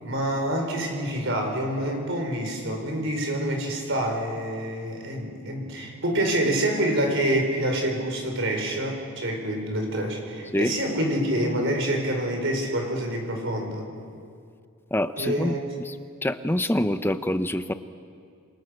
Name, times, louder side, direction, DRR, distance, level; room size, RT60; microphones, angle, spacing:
voice 1, 0.0-13.9 15.2-15.6, right 1 dB, 60° right, 3 dB, 5.3 m, -27 dB
voice 2, 14.9-15.6 15.9-16.0 16.2-17.7, left 1 dB, 10° left, 10 dB, 0.8 m, -25 dB
28.0 x 26.0 x 6.7 m, 2.3 s
head